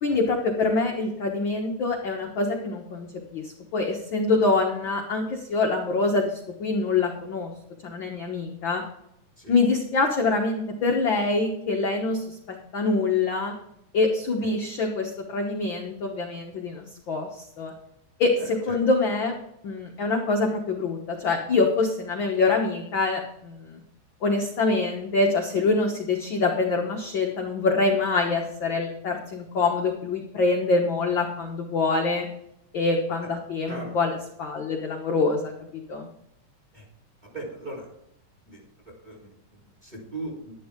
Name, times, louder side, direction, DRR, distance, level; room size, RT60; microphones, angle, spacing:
voice 1, 0.0-3.1 3.3-7.5 7.8-8.8 9.5-13.5 13.9-17.7 18.2-19.3 19.6-23.8 24.2-32.3 32.7-35.5 35.9-36.1, left 3 dB, 50° left, 1 dB, 1.5 m, -25 dB
voice 2, 18.4-18.8 33.7-33.9 36.7-36.8 37.2-37.9 38.5-40.5, right 2 dB, 15° right, -1 dB, 4.2 m, -39 dB
11.5 x 11.0 x 3.7 m, 0.78 s
omnidirectional pair, 3.6 m